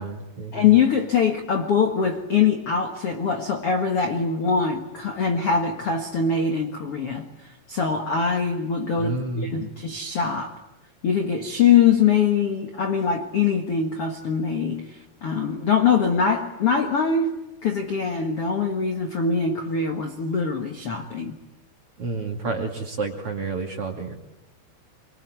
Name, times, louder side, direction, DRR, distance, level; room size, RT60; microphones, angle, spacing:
voice 1, 0.0-0.7 9.0-9.7 22.0-24.1, right 3 dB, 40° right, 2 dB, 2.5 m, -30 dB
voice 2, 0.5-7.2 7.7-10.6 11.0-21.3, left 6 dB, 55° left, 4 dB, 1.6 m, -23 dB
25.0 x 24.5 x 9.5 m, 0.97 s
omnidirectional pair, 5.1 m